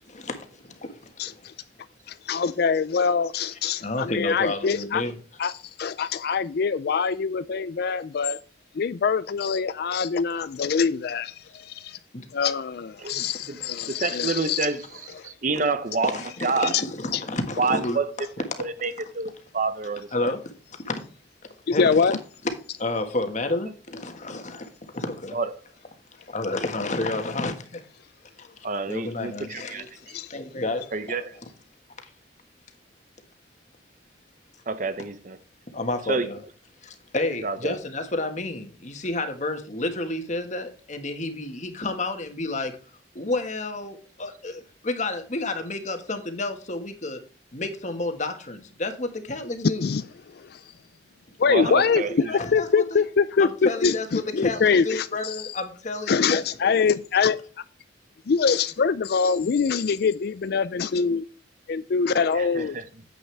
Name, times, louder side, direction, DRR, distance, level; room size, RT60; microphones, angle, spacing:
voice 1, 0.1-1.5 3.8-5.2 12.1-12.2 15.5-15.6 16.0-18.3 20.1-21.0 21.7-22.2 22.8-25.4 26.2-27.8 28.4-31.2 35.7-36.4 36.8-42.7 43.1-47.2 47.5-49.9 51.6-51.7 52.0-53.0 53.4-56.5 56.8-56.9, left 2 dB, 40° left, 1.5 m, -31 dB
voice 2, 1.2-1.5 2.1-5.0 5.4-5.5 5.8-8.4 8.8-12.0 12.3-14.7 15.2-15.3 17.1-17.2 21.7-22.2 30.1-30.3 49.8-50.0 50.4-50.6 51.4-52.0 52.5-55.4 56.1-57.4 58.3-61.2 61.7-62.8, left 5 dB, 55° left, 0.4 m, -24 dB
voice 3, 13.0-13.6 13.9-14.8 15.2-16.7 17.6-18.0 18.6-20.3 25.3-25.5 28.6-29.8 30.9-31.3 34.7-35.4 36.1-36.3 37.4-37.7 51.5-52.1 62.3-62.8, right 4 dB, 45° right, 0.8 m, -28 dB
9.4 x 7.9 x 3.3 m
head